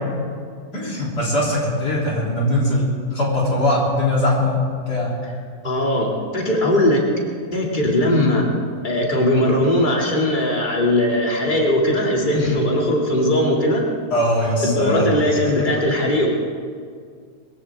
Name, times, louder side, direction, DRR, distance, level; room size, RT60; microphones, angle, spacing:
voice 1, 0.7-2.9 3.1-4.5 4.9-5.1 14.1-15.3, left 1 dB, 75° left, -4 dB, 3.9 m, -21 dB
voice 2, 5.6-7.0 7.5-8.4 8.8-13.8 14.6-16.3, left 1 dB, 30° left, -2 dB, 2.5 m, -19 dB
22.0 x 15.0 x 3.6 m, 2.1 s
omnidirectional pair, 1.8 m